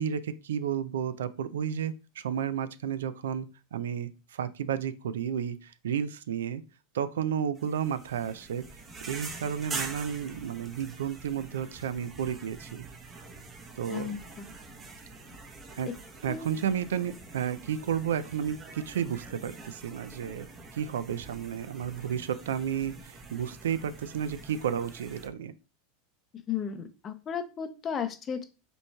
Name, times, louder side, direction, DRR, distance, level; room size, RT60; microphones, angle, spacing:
voice 1, 0.0-6.6 6.9-8.7 9.0-12.8 13.8-14.1 15.8-15.9 16.2-25.5, right 8 dB, 85° right, 14 dB, 0.3 m, -32 dB
sound 1, 7.5-25.3, right 3 dB, 30° right, 0.9 m, -45 dB
voice 2, 13.9-14.5 16.3-16.5 26.5-28.5, left 7 dB, 30° left, 9 dB, 0.6 m, -34 dB
5.2 x 3.0 x 2.2 m, 0.31 s
hypercardioid pair, 105°, 0 cm